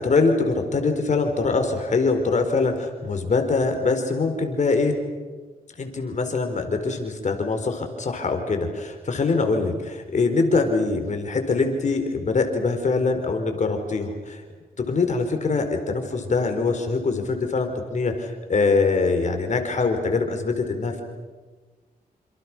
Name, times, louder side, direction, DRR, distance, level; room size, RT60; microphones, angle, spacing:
voice 1, 0.0-5.0 5.8-14.4 14.8-21.0, left 4 dB, 50° left, 6 dB, 4.5 m, -23 dB
28.5 x 27.5 x 6.3 m, 1.3 s
cardioid pair, 85°, 16 cm